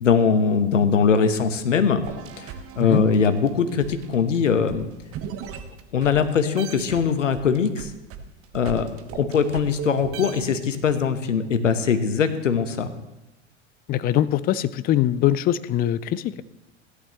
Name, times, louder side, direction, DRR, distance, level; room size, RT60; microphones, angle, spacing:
voice 1, 0.0-2.1 2.4-4.9 5.9-7.9 8.5-8.9 9.1-12.9, left 6 dB, 80° left, 10 dB, 1.2 m, -21 dB
sound 1, 2.0-6.2 6.6-10.9, right 8 dB, 35° right, 1.3 m, -38 dB
voice 2, 13.9-16.4, left 12 dB, 25° left, 17 dB, 0.4 m, -22 dB
16.5 x 11.0 x 3.1 m, 0.99 s
figure-of-eight pair, 85°, 37 cm